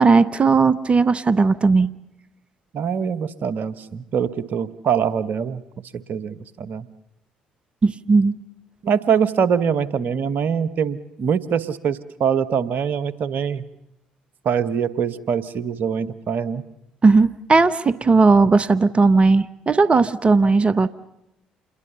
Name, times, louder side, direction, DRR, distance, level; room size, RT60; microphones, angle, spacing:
voice 1, 0.0-1.9 7.8-8.3 17.0-20.9, right 4 dB, 30° right, 14 dB, 1.0 m, -16 dB
voice 2, 2.7-5.6 5.9-6.9 8.8-13.6 14.4-16.6, right 7 dB, 60° right, 15 dB, 1.3 m, -23 dB
28.0 x 21.5 x 7.0 m, 0.86 s
hypercardioid pair, 50°, 4 cm